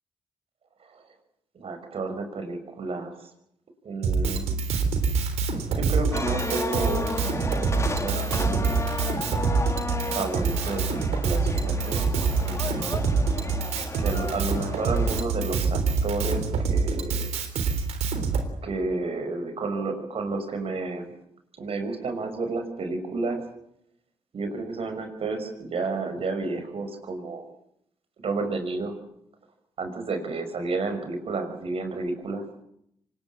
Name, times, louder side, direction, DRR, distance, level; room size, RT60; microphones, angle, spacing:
voice 1, 1.5-3.3 3.8-4.5 5.7-8.9 10.0-13.0 14.0-17.3 18.6-21.1 21.6-23.4 24.3-27.4 28.2-29.0 29.8-32.4, right 3 dB, 65° right, 7 dB, 5.9 m, -31 dB
Drum kit, 4.0-18.5, right 4 dB, 85° right, 3.6 m, -26 dB
sound 1, 6.1-15.2, left 2 dB, 25° left, 2.2 m, -33 dB
25.0 x 21.0 x 8.7 m, 0.74 s
supercardioid pair, 55°, 11 cm